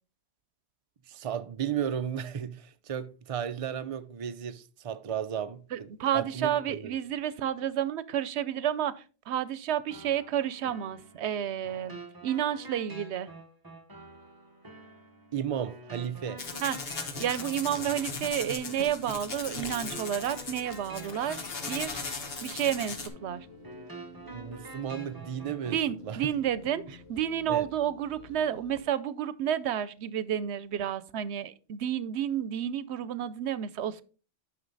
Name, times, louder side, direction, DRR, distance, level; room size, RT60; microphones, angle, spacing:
voice 1, 1.1-6.9 15.3-16.4 24.3-25.8 26.0-26.2 27.5-27.7, right 8 dB, 40° right, 0.6 m, -34 dB
voice 2, 5.7-8.9 9.3-13.3 16.6-16.8 17.2-21.4 21.7-22.0 22.4-23.5 25.7-34.0, right 10 dB, 90° right, 0.9 m, -30 dB
sound 1, 9.9-25.9, right 2 dB, 20° right, 1.2 m, -48 dB
sound 2, 16.2-28.8, equal, 80° left, 2.5 m, -51 dB
sound 3, 16.4-23.1, left 4 dB, 65° left, 1.4 m, -38 dB
9.5 x 5.6 x 3.9 m
omnidirectional pair, 1.1 m